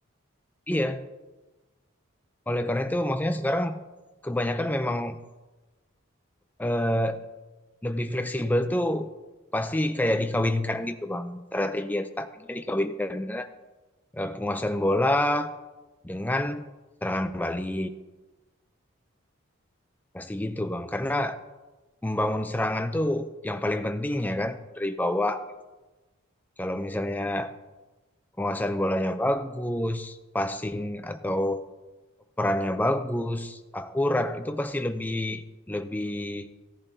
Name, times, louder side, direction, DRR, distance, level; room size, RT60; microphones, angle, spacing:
voice 1, 0.7-1.1 2.5-3.8 4.2-5.2 6.6-7.3 7.8-9.1 9.5-13.5 14.1-15.5 16.0-16.7 17.0-17.9 20.1-21.4 22.0-25.4 26.6-27.5 28.4-31.6 32.4-36.5, left 1 dB, 10° left, 8 dB, 0.5 m, -27 dB
17.0 x 10.5 x 2.8 m, 1.2 s
head